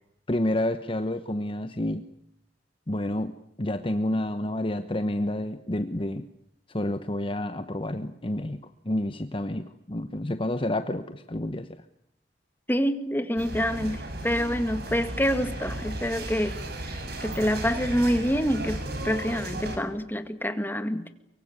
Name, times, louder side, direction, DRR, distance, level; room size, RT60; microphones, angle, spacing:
voice 1, 0.3-2.0 2.9-3.3 3.6-6.2 6.7-8.6 8.8-11.7, left 1 dB, 30° left, 10 dB, 1.1 m, -29 dB
voice 2, 12.7-16.6 16.8-21.1, equal, 10° left, 9 dB, 2.0 m, -27 dB
sound 1, 13.4-19.8, right 1 dB, 60° right, 6.2 m, -35 dB
23.5 x 23.5 x 9.7 m, 0.77 s
head